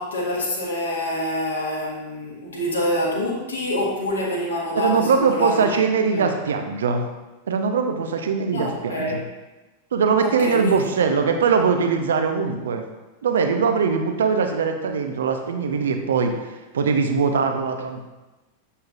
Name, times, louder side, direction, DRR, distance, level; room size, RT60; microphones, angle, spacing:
voice 1, 0.0-5.8 6.1-6.3 8.5-9.3 10.2-10.9 11.2-11.3, left 1 dB, 70° left, -4 dB, 1.6 m, -26 dB
voice 2, 4.7-7.0 7.5-9.2 9.9-12.8 13.2-18.0, right 5 dB, 65° right, 6 dB, 0.6 m, -21 dB
7.7 x 5.5 x 2.4 m, 1.1 s
figure-of-eight pair, 90°, 0 cm